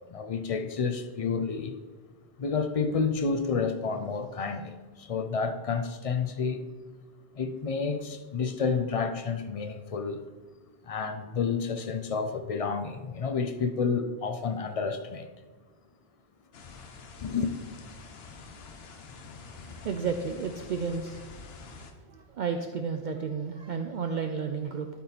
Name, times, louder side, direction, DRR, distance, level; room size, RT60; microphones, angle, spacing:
voice 1, 0.1-1.8 2.4-6.7 7.3-10.3 10.8-15.3 17.2-17.5, left 5 dB, 45° left, 0.5 m, -30 dB
sound 1, 16.5-21.9, left 4 dB, 75° left, 1.0 m, -47 dB
voice 2, 19.6-21.2 21.5-24.9, right 5 dB, 60° right, 0.6 m, -33 dB
11.5 x 4.3 x 4.1 m
omnidirectional pair, 1.1 m